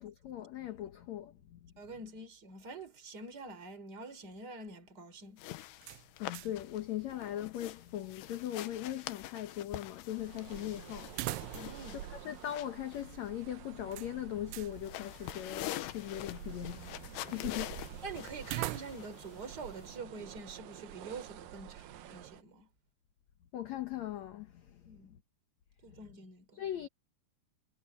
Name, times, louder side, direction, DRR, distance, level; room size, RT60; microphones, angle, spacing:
voice 1, 0.0-1.7 6.2-11.2 11.9-17.8 23.5-24.8 25.9-26.2 26.5-26.9, left 12 dB, 65° left, 1.8 m, -40 dB
voice 2, 1.8-5.4 11.5-12.0 18.0-22.7 24.8-25.2 25.8-26.6, right 3 dB, 25° right, 4.3 m, -46 dB
sound 1, 5.4-20.0, left 14 dB, 80° left, 3.0 m, -46 dB
sound 2, 5.8-6.7 7.0-7.1 11.1-11.9 12.2-12.3 13.9-14.8 18.4-19.3, right 19 dB, 85° right, 2.8 m, -41 dB
sound 3, 10.2-22.4, right 11 dB, 70° right, 2.4 m, -49 dB
omnidirectional pair, 4.8 m